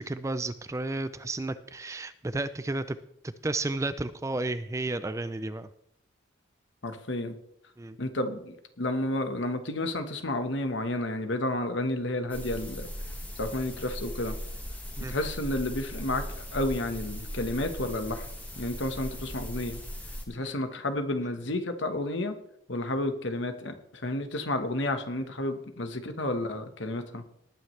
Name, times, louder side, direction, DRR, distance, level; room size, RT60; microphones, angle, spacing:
voice 1, 0.0-3.0 3.2-5.7 7.8-8.0 15.0-15.1 20.4-20.6, right 2 dB, 15° right, 13 dB, 0.4 m, -32 dB
voice 2, 6.8-7.3 8.0-12.9 13.4-14.3 15.1-18.3 18.6-19.8 20.3-22.3 22.7-27.2, left 1 dB, 65° left, 7 dB, 1.3 m, -31 dB
sound 1, 12.3-20.2, equal, 10° left, 1.6 m, -38 dB
18.5 x 9.3 x 3.3 m, 0.74 s
head